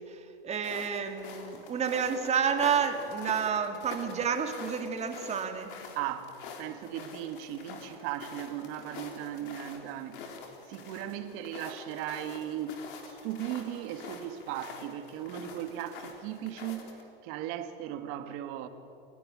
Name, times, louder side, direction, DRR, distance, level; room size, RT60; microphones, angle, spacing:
voice 1, 0.4-5.8, right 7 dB, 20° right, 6 dB, 2.1 m, -30 dB
sound 1, 0.5-17.0, left 5 dB, 60° left, 3.7 m, -46 dB
voice 2, 6.0-6.3 6.6-10.2 10.7-12.8 13.1-18.7, right 11 dB, 45° right, 9 dB, 1.9 m, -37 dB
28.5 x 11.5 x 9.9 m, 2.9 s
hypercardioid pair, 125°, 30 cm